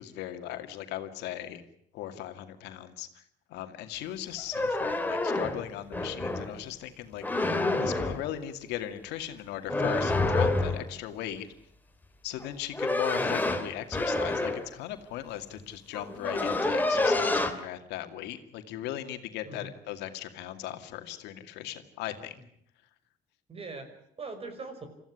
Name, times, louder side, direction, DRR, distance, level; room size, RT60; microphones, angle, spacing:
voice 1, 0.0-1.6 1.9-3.2 3.5-11.5 12.2-22.4, left 12 dB, 90° left, 8 dB, 2.3 m, -38 dB
sound 1, 4.4-6.5 7.2-8.3 9.7-10.9 12.4-14.7 15.6-15.7 15.9-17.5, left 2 dB, 10° left, 2.8 m, -28 dB
voice 2, 23.5-24.9, right 3 dB, 35° right, 9 dB, 5.5 m, -41 dB
26.0 x 15.0 x 10.0 m, 0.73 s
cardioid pair, 110°, 17 cm